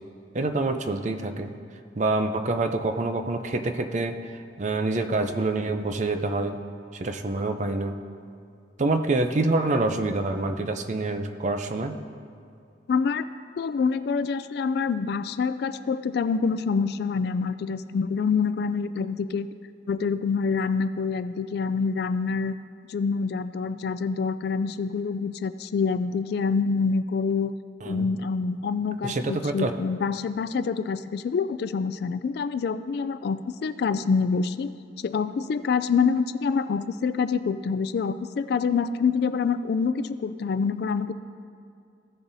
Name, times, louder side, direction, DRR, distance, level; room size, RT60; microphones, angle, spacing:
voice 1, 0.3-1.5 2.0-6.6 6.9-8.0 8.8-12.0 27.8-28.1 29.0-29.7, right 2 dB, 40° right, 7 dB, 0.5 m, -26 dB
voice 2, 12.9-13.3 13.6-19.5 19.9-22.6 22.9-27.6 27.9-34.7 35.0-41.1, left 5 dB, 60° left, 13 dB, 0.3 m, -26 dB
16.0 x 7.0 x 2.7 m, 2.4 s
head